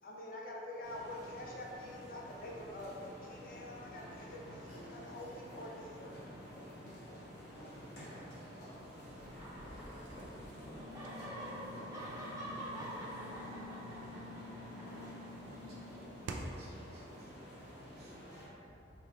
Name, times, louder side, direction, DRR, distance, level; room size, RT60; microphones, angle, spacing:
voice 1, 0.0-6.1, left 1 dB, 50° left, -2 dB, 0.4 m, -46 dB
sound 1, 0.8-18.5, equal, 70° left, 1.1 m, -50 dB
voice 2, 0.9-1.8 7.5-8.0 8.7-9.6 11.0-13.0, equal, 15° left, -9 dB, 0.9 m, -63 dB
sound 2, 9.3-10.5 10.7-15.7, right 1 dB, 20° right, 0.4 m, -47 dB
sound 3, 10.0-16.7, equal, 85° right, 0.3 m, -48 dB
voice 3, 15.4-16.1 16.6-17.5 17.9-18.8, equal, 60° right, -7 dB, 0.9 m, -61 dB
4.2 x 2.5 x 3.1 m, 2.8 s
head